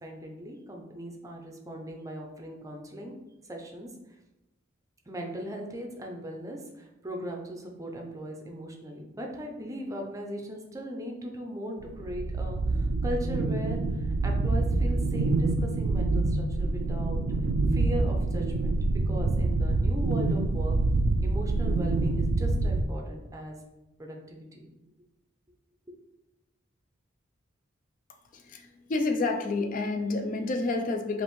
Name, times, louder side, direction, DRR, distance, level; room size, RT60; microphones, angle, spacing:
voice 1, 0.0-3.1 3.5-3.9 5.1-17.2 17.7-18.8 19.1-20.8 21.2-23.6 24.0-24.7, equal, 15° right, 1 dB, 0.5 m, -38 dB
sound 1, 11.8-22.8, right 2 dB, 70° right, 0.3 m, -26 dB
voice 2, 28.3-31.2, left 3 dB, 40° left, 4 dB, 0.4 m, -29 dB
5.2 x 2.6 x 3.1 m, 0.98 s
head